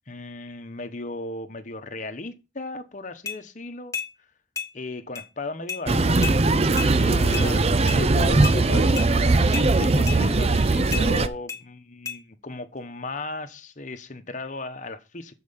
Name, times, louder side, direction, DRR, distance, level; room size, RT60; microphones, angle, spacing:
voice 1, 0.1-4.3 4.7-6.3 6.9-7.7 9.8-15.4, left 2 dB, 40° left, 1.1 m, -36 dB
sound 1, 3.3-3.4 3.9-4.1 4.6-4.7 5.2-5.3 5.7-5.8 6.2-6.4 6.8-6.9 7.3-7.5 7.9-8.0 8.4-8.6 9.0-9.1 9.5-9.7 10.1-10.2 10.9-11.1 11.5-11.6 12.1-12.2, left 6 dB, 15° left, 1.4 m, -32 dB
sound 2, 5.9-11.3, right 3 dB, 35° right, 0.6 m, -20 dB
voice 2, 7.0-7.6 8.0-9.5, left 4 dB, 65° left, 0.6 m, -34 dB
13.5 x 4.8 x 5.6 m
head